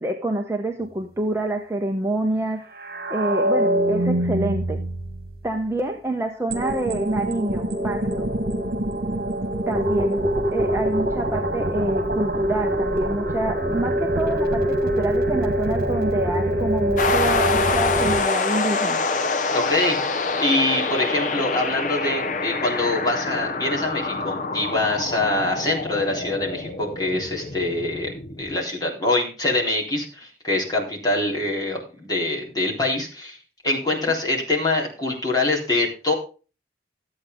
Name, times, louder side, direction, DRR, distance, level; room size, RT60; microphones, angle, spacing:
voice 1, 0.0-2.7 3.1-4.8 5.4-8.3 9.7-19.1 27.1-27.2, right 1 dB, 15° right, 3 dB, 0.9 m, -27 dB
sound 1, 2.8-5.5 6.5-18.2, right 1 dB, 55° right, 1.7 m, -24 dB
sound 2, 17.0-28.6, left 3 dB, 45° left, 0.8 m, -26 dB
voice 2, 19.5-20.0 20.4-28.1 28.4-33.4 33.6-36.1, left 2 dB, 20° left, -3 dB, 3.7 m, -24 dB
13.5 x 8.5 x 3.8 m, 0.33 s
head